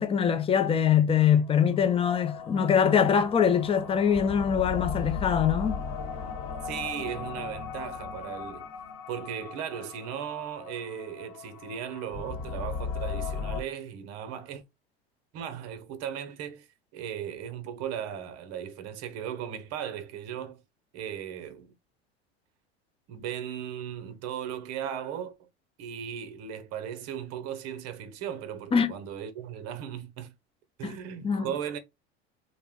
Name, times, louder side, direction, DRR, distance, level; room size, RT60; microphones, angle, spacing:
voice 1, 0.0-5.8 28.7-28.9 31.2-31.5, left 8 dB, 20° left, 0.4 m, -23 dB
sound 1, 1.4-13.6, left 5 dB, 50° left, 1.1 m, -37 dB
voice 2, 6.6-8.7 9.1-14.6 15.3-16.7 16.9-20.6 20.9-21.7 23.1-25.5 25.8-30.3 30.8-31.8, right 9 dB, 50° right, 0.8 m, -37 dB
2.5 x 2.1 x 3.6 m
hypercardioid pair, 95°, 33 cm